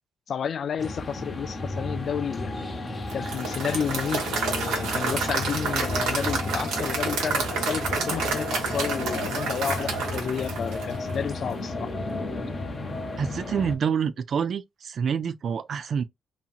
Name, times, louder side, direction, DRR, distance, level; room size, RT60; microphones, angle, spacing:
voice 1, 0.3-2.7 3.1-11.9, left 7 dB, 55° left, 0.3 m, -31 dB
sound 1, 0.8-13.8, left 2 dB, 30° left, 0.7 m, -33 dB
Applause / Crowd, 3.1-11.3, right 4 dB, 90° right, 1.0 m, -29 dB
voice 2, 13.2-16.0, right 7 dB, 55° right, 0.3 m, -27 dB
2.8 x 2.7 x 2.4 m
cardioid pair, 90°, 0 cm